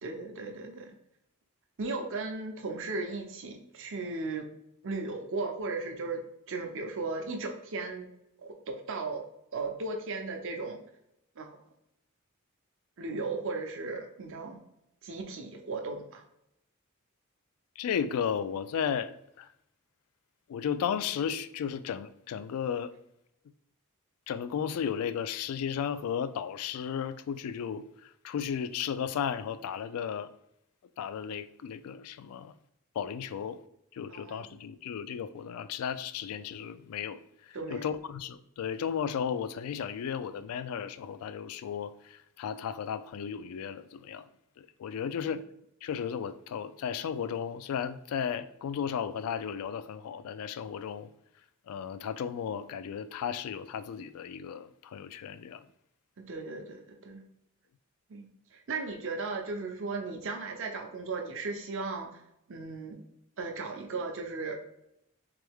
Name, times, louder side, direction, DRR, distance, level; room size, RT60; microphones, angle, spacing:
voice 1, 0.0-0.9 1.8-4.5 4.8-6.2 6.5-8.1 8.4-9.3 9.5-10.8 11.4-11.6 13.0-14.6 15.0-16.2 34.1-34.6 37.5-37.9 56.2-57.2 58.1-62.2 62.5-63.0 63.4-64.6, right 3 dB, 60° right, 3 dB, 0.6 m, -36 dB
voice 2, 17.8-19.1 19.4-19.5 20.5-22.9 24.3-30.3 31.0-32.5 33.0-33.6 33.9-37.2 37.7-44.2 44.6-45.4 45.8-51.1 51.7-55.6, left 7 dB, 80° left, 15 dB, 0.3 m, -34 dB
3.4 x 3.3 x 3.4 m, 0.79 s
head